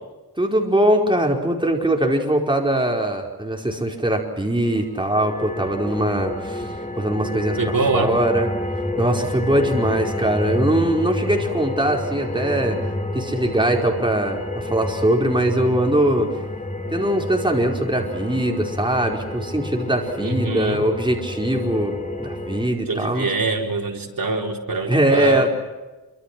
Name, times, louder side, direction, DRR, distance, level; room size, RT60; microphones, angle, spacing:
voice 1, 0.4-6.7 7.0-8.5 9.0-12.8 13.1-16.3 16.9-23.3 24.9-25.5, right 1 dB, 15° right, 1 dB, 4.8 m, -21 dB
sound 1, 4.8-22.7, left 1 dB, 20° left, 2.9 m, -29 dB
voice 2, 7.6-8.2 20.2-20.8 22.9-25.5, right 3 dB, 65° right, 1 dB, 4.3 m, -24 dB
27.5 x 25.5 x 6.1 m, 1.2 s
wide cardioid pair, 100°, 37 cm